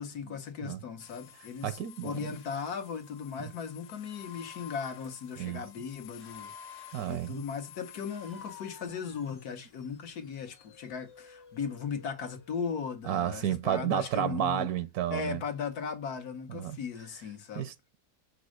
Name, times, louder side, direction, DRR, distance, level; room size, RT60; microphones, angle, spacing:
voice 1, 0.0-14.7 15.1-17.7, left 6 dB, 80° left, 1.6 m, -37 dB
sound 1, 1.0-12.7, left 8 dB, 45° left, 1.1 m, -52 dB
voice 2, 1.6-2.3 5.4-5.6 6.9-7.4 13.0-15.4 16.5-16.8 17.6-18.0, right 11 dB, 80° right, 1.1 m, -31 dB
6.3 x 5.4 x 6.3 m
omnidirectional pair, 1.6 m